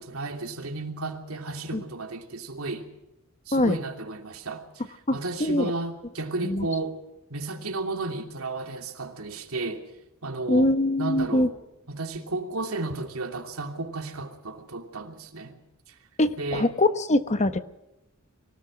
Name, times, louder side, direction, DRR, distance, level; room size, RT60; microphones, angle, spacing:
voice 1, 0.0-2.9 3.5-4.8 5.1-7.0 7.3-9.8 10.2-11.5 11.9-15.6 16.4-16.7, right 2 dB, 85° right, 5 dB, 2.9 m, -33 dB
voice 2, 5.1-5.7 6.4-6.7 10.5-11.5 16.2-17.6, left 1 dB, 35° left, 11 dB, 1.1 m, -23 dB
24.5 x 17.0 x 6.4 m, 0.91 s
head